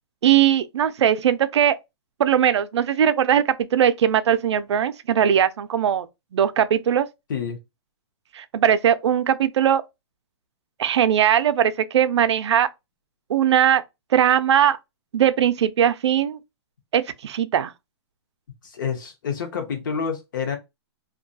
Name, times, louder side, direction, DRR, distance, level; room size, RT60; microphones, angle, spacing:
voice 1, 0.2-1.8 2.2-3.4 3.7-6.1 6.3-7.1 8.3-9.8 10.8-12.7 13.3-13.8 14.1-14.8 15.1-16.4 16.9-17.7, right 9 dB, 85° right, 0.4 m, -19 dB
voice 2, 18.6-20.6, left 6 dB, 45° left, 0.7 m, -28 dB
2.3 x 2.2 x 2.6 m
hypercardioid pair, 175°, 14 cm